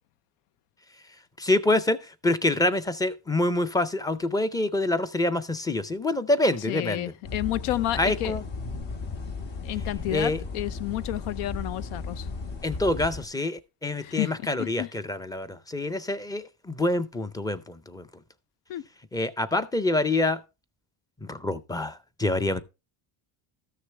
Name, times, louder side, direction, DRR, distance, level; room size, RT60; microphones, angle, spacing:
voice 1, 1.4-7.1 8.0-8.4 10.1-10.4 12.6-18.1 19.1-20.4 21.2-22.6, left 2 dB, 10° left, 0.4 m, -26 dB
voice 2, 6.7-8.4 9.6-12.3 14.0-14.3 14.6-14.9 18.7-18.8, left 14 dB, 90° left, 0.7 m, -30 dB
sound 1, 7.2-13.3, left 4 dB, 60° left, 2.0 m, -35 dB
13.5 x 6.6 x 3.3 m
cardioid pair, 120°, 49 cm